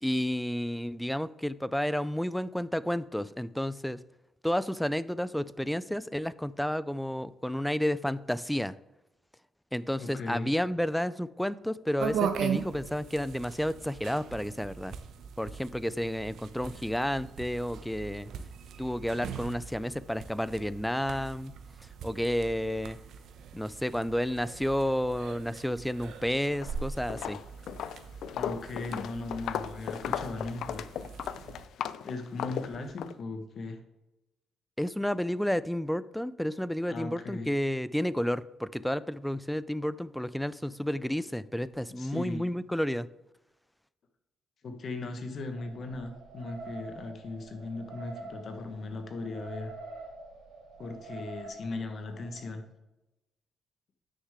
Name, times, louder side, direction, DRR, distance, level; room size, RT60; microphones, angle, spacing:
voice 1, 0.0-4.0 4.4-8.8 9.7-15.0 15.4-18.3 18.8-21.5 22.0-23.0 23.5-27.4 34.8-43.1, equal, 5° left, 18 dB, 0.3 m, -31 dB
voice 2, 10.0-10.5 28.3-30.8 32.0-33.8 36.9-37.5 42.0-42.5 44.6-49.7 50.8-52.6, left 3 dB, 55° left, 7 dB, 1.3 m, -38 dB
sound 1, 12.0-31.7, right 7 dB, 75° right, 0.7 m, -40 dB
Walk footsteps, 26.5-26.8 27.1-33.1, left 9 dB, 75° left, 0.4 m, -36 dB
sound 2, 45.5-52.5, right 3 dB, 90° right, 2.0 m, -46 dB
9.5 x 6.4 x 3.7 m, 0.98 s
cardioid pair, 90°, 0 cm